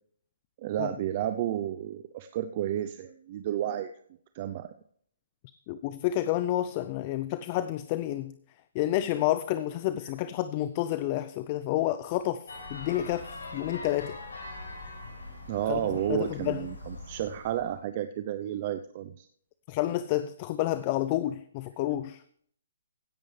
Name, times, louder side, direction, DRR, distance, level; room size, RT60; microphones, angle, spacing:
voice 1, 0.6-3.9 4.3-4.7 15.5-19.3, right 11 dB, 40° right, 0.6 m, -31 dB
voice 2, 5.7-8.3 8.7-12.4 12.7-14.2 15.7-15.8 16.1-16.7 19.7-22.2, left 14 dB, 35° left, 0.5 m, -29 dB
sound 1, 12.5-17.8, left 2 dB, 85° left, 5.5 m, -43 dB
16.0 x 10.5 x 3.3 m
hypercardioid pair, 145°, 0 cm